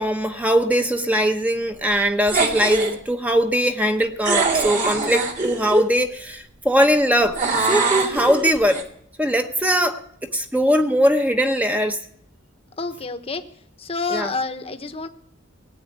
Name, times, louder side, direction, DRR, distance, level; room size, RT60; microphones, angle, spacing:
voice 1, 0.0-8.8 9.2-12.0 14.1-14.3, equal, 10° right, 6 dB, 1.0 m, -21 dB
sound 1, 2.3-3.0 4.2-5.9 7.3-8.8, right 3 dB, 40° right, 2.3 m, -22 dB
voice 2, 12.8-13.4 13.8-15.1, left 3 dB, 30° left, 7 dB, 1.1 m, -28 dB
18.5 x 7.9 x 9.3 m, 0.68 s
head